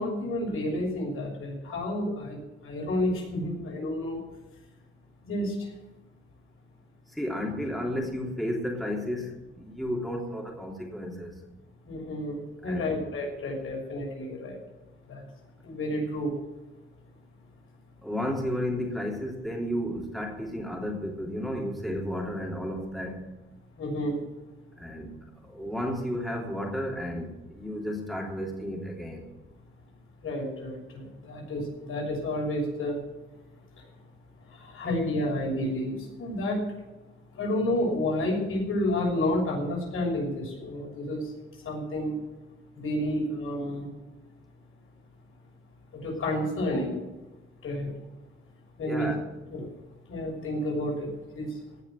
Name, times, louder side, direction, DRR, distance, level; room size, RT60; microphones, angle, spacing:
voice 1, 0.0-2.4 2.6-4.2 5.2-5.7 11.8-14.6 15.1-15.2 15.6-16.3 23.8-24.2 30.2-33.0 33.8-34.1 34.4-36.6 37.3-42.2 42.7-43.9 45.9-47.0 47.6-47.9 48.8-49.1 49.5-49.7 50.1-51.6, left 1 dB, 80° left, -1 dB, 6.3 m, -30 dB
voice 2, 7.1-9.3 9.6-11.3 12.6-13.0 18.0-23.2 24.8-25.1 25.4-29.3 48.8-49.2, equal, ahead, -1 dB, 3.2 m, -32 dB
17.5 x 6.1 x 9.5 m, 1.1 s
cardioid pair, 110°, 21 cm